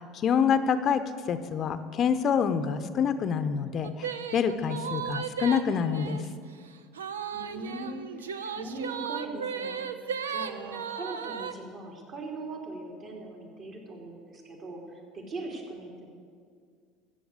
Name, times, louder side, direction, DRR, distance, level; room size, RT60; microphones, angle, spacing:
voice 1, 0.0-6.3, left 7 dB, 45° left, 11 dB, 0.7 m, -27 dB
sound 1, 3.8-6.3 6.9-11.5, right 7 dB, 85° right, 0.6 m, -35 dB
voice 2, 7.3-9.9 10.3-16.1, right 2 dB, 50° right, -1 dB, 3.7 m, -40 dB
14.0 x 7.9 x 8.1 m, 2.1 s
hypercardioid pair, 70°, 0 cm